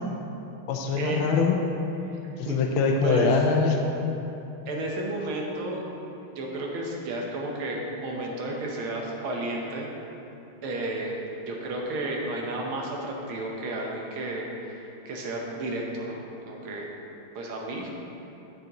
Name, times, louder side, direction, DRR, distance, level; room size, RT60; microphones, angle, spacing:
voice 1, 0.7-1.6 2.4-3.8, left 5 dB, 75° left, 2 dB, 1.4 m, -23 dB
voice 2, 2.2-2.6 3.0-3.3 4.7-5.9 6.3-9.9 10.6-11.2 11.5-16.9 17.4-17.9, right 2 dB, 90° right, -1 dB, 1.9 m, -32 dB
9.5 x 7.6 x 3.0 m, 2.9 s
omnidirectional pair, 2.3 m